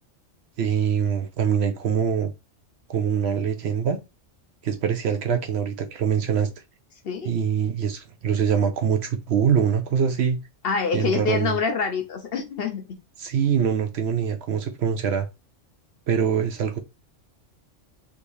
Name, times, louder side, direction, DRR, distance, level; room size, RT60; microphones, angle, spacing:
voice 1, 0.6-2.3 2.9-4.0 4.6-6.5 7.2-10.4 10.9-11.5 13.2-15.3 16.1-16.8, right 7 dB, 65° right, 0.8 m, -24 dB
voice 2, 10.6-13.0, left 5 dB, 60° left, 0.8 m, -26 dB
3.5 x 2.6 x 3.0 m
omnidirectional pair, 1.3 m